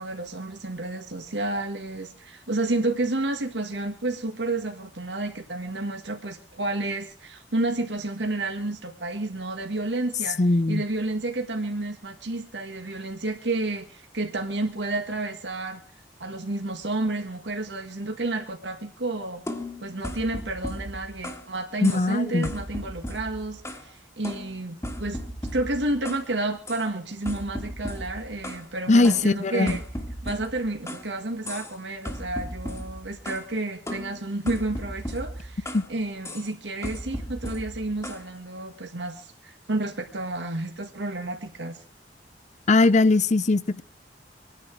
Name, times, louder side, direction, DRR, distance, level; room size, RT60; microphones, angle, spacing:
voice 1, 0.0-10.4 10.7-15.8 16.2-19.4 19.8-25.2 25.5-29.8 30.2-41.8, right 2 dB, 80° right, 1.8 m, -30 dB
voice 2, 10.4-10.8 21.8-22.5 28.9-29.8 35.7-35.8 42.7-43.8, left 2 dB, 40° left, 0.6 m, -20 dB
sound 1, 19.5-21.5 21.8-22.2 22.4-23.9 24.2-26.3 26.7-26.9 27.3-28.7 29.0-31.1 31.5-31.8 32.1-33.5 33.9-35.9 36.2-36.5 36.8-38.3, equal, 15° left, 1.7 m, -36 dB
26.0 x 10.0 x 4.7 m
head